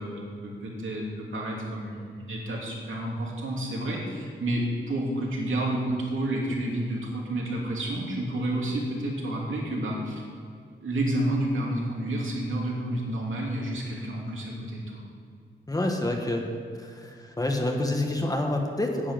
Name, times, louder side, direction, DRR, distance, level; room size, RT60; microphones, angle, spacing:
voice 1, 0.0-10.2 10.8-15.0, right 1 dB, 75° right, -3 dB, 3.0 m, -30 dB
voice 2, 15.7-16.5 16.8-19.1, left 1 dB, 15° left, 2 dB, 1.4 m, -28 dB
10.0 x 7.5 x 9.1 m, 2.3 s
wide cardioid pair, 120°, 20 cm